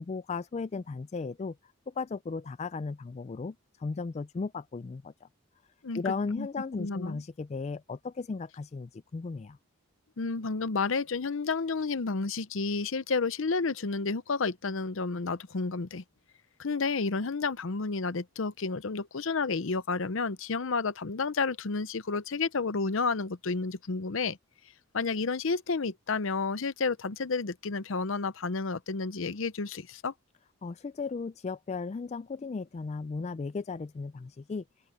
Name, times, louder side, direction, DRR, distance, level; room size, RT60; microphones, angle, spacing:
voice 1, 0.0-1.6 1.9-5.3 5.9-9.6 30.6-34.6, left 4 dB, 30° left, 0.3 m, -36 dB
voice 2, 5.8-6.5 6.8-7.2 10.2-16.0 16.6-24.4 24.9-30.1, left 4 dB, 65° left, 0.7 m, -31 dB
head